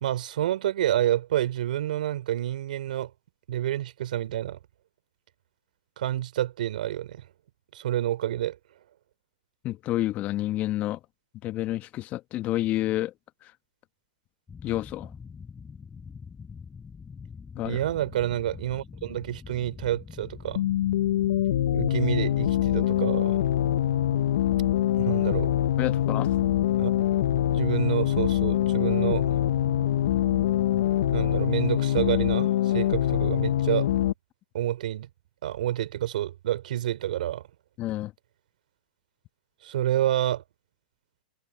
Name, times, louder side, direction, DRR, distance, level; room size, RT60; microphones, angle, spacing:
voice 1, 0.0-3.1 3.5-4.6 6.0-7.2 7.7-8.6 17.6-20.6 21.7-23.4 24.9-25.5 26.8-26.9 27.5-29.3 31.1-33.9 34.5-35.1 35.4-37.4 39.6-40.4, right 12 dB, 65° right, 3.4 m, -28 dB
voice 2, 9.6-11.0 11.4-13.1 14.6-15.1 17.5-17.8 25.8-26.3 37.8-38.1, left 15 dB, 30° left, 1.3 m, -29 dB
sound 1, 14.5-31.1, left 6 dB, 15° left, 7.1 m, -44 dB
sound 2, 20.6-34.1, left 12 dB, 65° left, 0.8 m, -24 dB
hypercardioid pair, 120°, 5 cm